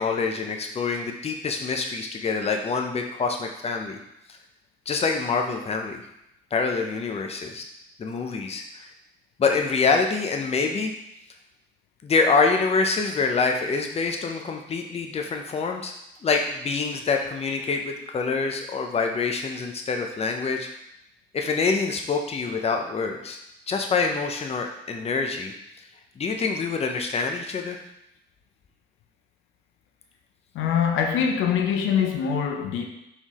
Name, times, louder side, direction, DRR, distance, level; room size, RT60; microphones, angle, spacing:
voice 1, 0.0-4.0 4.3-4.4 4.9-6.0 6.5-7.6 8.0-8.9 9.4-10.9 12.0-15.9 16.2-20.7 21.3-23.4 23.7-25.5 26.2-27.8, left 4 dB, 30° left, 3 dB, 0.6 m, -26 dB
voice 2, 30.5-32.9, left 7 dB, 80° left, 3 dB, 0.5 m, -23 dB
4.3 x 3.5 x 3.0 m, 0.83 s
cardioid pair, 90°, 20 cm